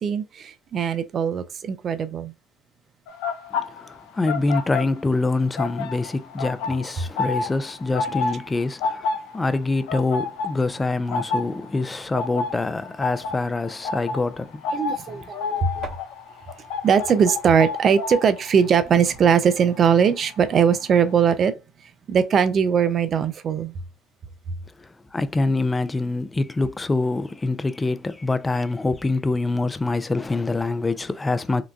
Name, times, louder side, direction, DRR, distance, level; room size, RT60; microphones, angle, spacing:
voice 1, 0.0-2.3 14.7-15.9 16.8-21.5 22.1-23.7, right 7 dB, 50° right, 0.5 m, -20 dB
sound 1, 3.1-5.3 5.5-20.4 20.7-21.0, left 4 dB, 75° left, 0.5 m, -30 dB
voice 2, 3.5-14.6 15.1-15.2 24.8-31.6, left 3 dB, 20° left, 0.4 m, -25 dB
3.8 x 2.2 x 2.4 m
hypercardioid pair, 60°, 0 cm